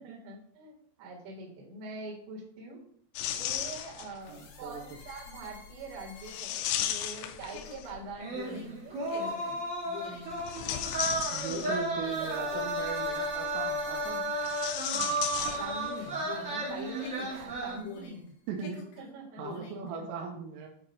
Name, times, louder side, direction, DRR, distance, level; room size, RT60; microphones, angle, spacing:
voice 1, 0.0-2.8 3.3-9.6 12.0-12.9 14.9-18.3 19.0-19.7, right 2 dB, 65° right, -4 dB, 3.6 m, -44 dB
sound 1, 3.2-4.3 6.2-8.1 10.3-12.1 14.3-16.1 16.4-16.5 17.4-17.6, left 11 dB, 85° left, 2.7 m, -35 dB
sound 2, 4.2-15.1 15.4-18.3 18.6-19.9, left 5 dB, 70° left, 2.6 m, -48 dB
voice 2, 4.3-4.9 11.3-14.3 18.5-18.9 19.4-20.7, right 5 dB, 85° right, 2 dB, 3.3 m, -39 dB
sound 3, 8.2-17.8, right 1 dB, 30° right, 1.4 m, -33 dB
8.5 x 2.8 x 5.3 m, 0.65 s
omnidirectional pair, 5.6 m